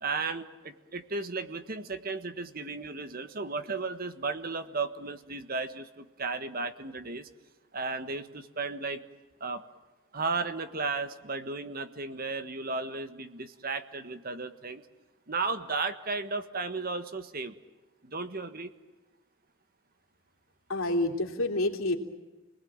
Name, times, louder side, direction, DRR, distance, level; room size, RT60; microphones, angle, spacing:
voice 1, 0.0-7.3 7.7-9.0 9.4-9.6 10.1-14.8 15.3-17.5 18.0-18.7, right 4 dB, 45° right, 10 dB, 1.5 m, -34 dB
voice 2, 20.7-22.0, left 2 dB, 75° left, 1 dB, 3.4 m, -28 dB
29.5 x 20.0 x 8.8 m, 1.2 s
head